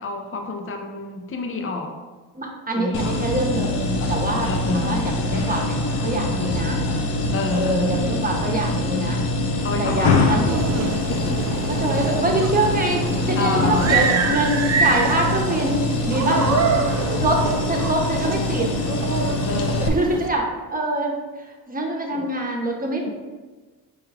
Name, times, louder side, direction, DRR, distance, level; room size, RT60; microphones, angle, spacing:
voice 1, 0.0-1.9 2.7-3.2 4.4-5.0 7.3-7.9 9.6-10.3 11.1-11.4 13.4-14.4 16.2-16.9 19.4-20.0 22.1-22.3, left 2 dB, 30° left, 3 dB, 0.7 m, -28 dB
voice 2, 2.3-6.8 7.5-9.2 9.8-10.6 11.8-16.4 17.2-18.7 19.8-21.2 21.7-23.1, right 1 dB, 20° right, 0 dB, 1.0 m, -25 dB
sound 1, 2.9-19.9, left 2 dB, 90° left, 0.6 m, -24 dB
sound 2, 10.4-20.3, right 5 dB, 40° right, 0.5 m, -26 dB
4.8 x 2.3 x 4.7 m, 1.3 s
supercardioid pair, 60°, 40 cm